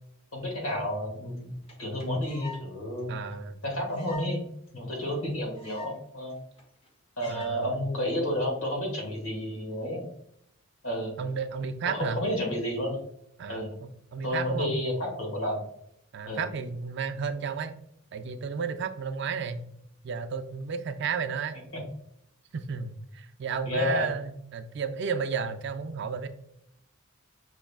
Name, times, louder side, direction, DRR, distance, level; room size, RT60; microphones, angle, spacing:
voice 1, 0.3-1.5 1.8-3.1 3.6-4.4 4.7-6.4 7.2-10.1 10.8-11.2 11.9-13.0 13.5-13.8 14.2-15.6 16.3-16.4 21.7-21.8 23.6-24.1, left 1 dB, 70° left, 0 dB, 1.6 m, -31 dB
sound 1, 1.4-1.5 1.7-1.8 2.0-2.6 3.0-3.1 3.3-3.4 3.9-4.3 4.7-4.8 5.0-5.1 5.3-6.0 6.3-6.4 6.6-6.9 7.2-7.5 8.1-8.4, left 3 dB, 25° left, 0.8 m, -44 dB
voice 2, 3.1-3.6 7.3-7.9 11.2-12.2 13.4-14.8 16.1-17.8 18.1-19.6 20.0-21.6 22.5-26.3, right 5 dB, 50° right, 9 dB, 0.4 m, -33 dB
6.1 x 3.4 x 2.4 m, 0.74 s
head